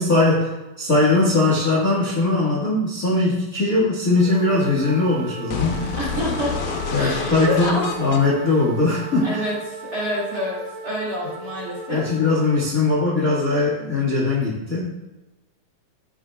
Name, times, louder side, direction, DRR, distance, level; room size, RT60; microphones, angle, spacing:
voice 1, 0.0-5.8 6.9-9.4 11.9-14.9, left 2 dB, 40° left, -5 dB, 1.3 m, -20 dB
sound 1, 4.2-12.7, right 4 dB, 65° right, 2.6 m, -37 dB
sound 2, 5.5-9.5, left 6 dB, 85° left, 2.6 m, -30 dB
voice 2, 6.0-6.6 7.0-7.8 9.2-10.6 10.8-12.0, left 1 dB, 30° right, -6 dB, 2.2 m, -27 dB
14.0 x 7.6 x 2.3 m, 1.0 s
omnidirectional pair, 4.2 m